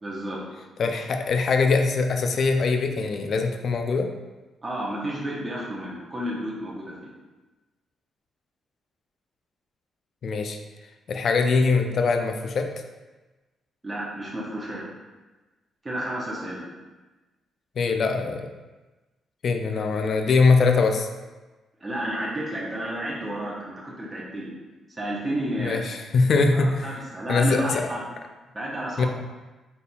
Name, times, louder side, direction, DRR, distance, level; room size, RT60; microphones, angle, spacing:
voice 1, 0.0-0.4 4.6-7.1 13.8-14.8 15.8-16.6 21.8-24.5 25.0-25.8 26.5-28.0 28.5-29.1, right 1 dB, 20° right, -6 dB, 0.8 m, -31 dB
voice 2, 0.8-4.1 10.2-10.6 11.1-12.7 17.8-18.4 19.4-21.1 25.6-26.9 27.3-27.8 29.0-29.1, left 4 dB, 60° left, 5 dB, 0.4 m, -22 dB
4.1 x 3.5 x 2.3 m, 1.2 s
cardioid pair, 90°, 0 cm